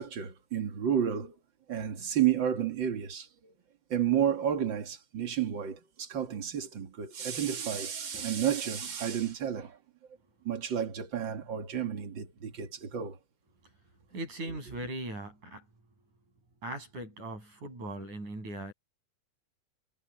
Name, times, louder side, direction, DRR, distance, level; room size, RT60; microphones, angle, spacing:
voice 1, 0.0-1.4 1.7-3.5 3.9-9.8 10.4-13.2 14.5-14.6, right 9 dB, 40° right, 2.3 m, -31 dB
voice 2, 14.1-15.6 16.6-18.7, right 1 dB, 65° right, 8.8 m, -39 dB
omnidirectional pair, 3.7 m